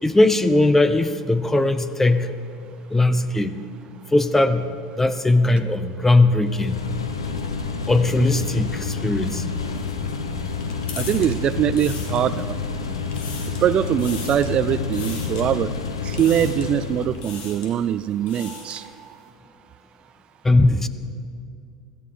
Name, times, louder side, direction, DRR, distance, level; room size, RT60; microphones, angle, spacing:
voice 1, 0.0-2.3 2.9-3.6 4.1-4.7 5.0-6.8 7.9-9.5 20.4-20.9, left 2 dB, 10° left, 12 dB, 0.8 m, -19 dB
sound 1, 6.4-17.3, left 5 dB, 90° left, 1.1 m, -29 dB
sound 2, 9.6-12.6 13.0-13.7 14.0-14.6 14.9-15.5 16.1-16.8 17.1-17.7 18.1-18.9, left 5 dB, 55° left, 2.4 m, -39 dB
voice 2, 11.0-12.6 13.6-15.7 16.0-18.9, right 10 dB, 40° right, 15 dB, 0.4 m, -22 dB
16.5 x 13.5 x 5.1 m, 2.4 s
hypercardioid pair, 80°, 3 cm